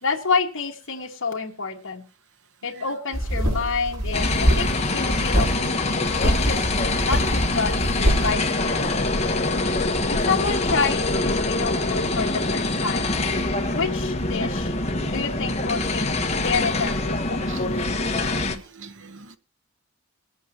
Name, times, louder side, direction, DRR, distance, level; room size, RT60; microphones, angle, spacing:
voice 1, 0.0-2.0 2.6-9.0 10.1-13.3 13.7-14.7 15.1-17.7, left 5 dB, 60° left, 2.0 m, -29 dB
sound 1, 3.1-4.8 5.1-5.5 6.1-8.3, equal, 80° right, 5.1 m, -23 dB
sound 2, 4.1-18.6, left 2 dB, 30° left, 1.3 m, -24 dB
voice 2, 18.4-19.4, right 5 dB, 60° right, 1.1 m, -42 dB
21.5 x 8.3 x 3.0 m
head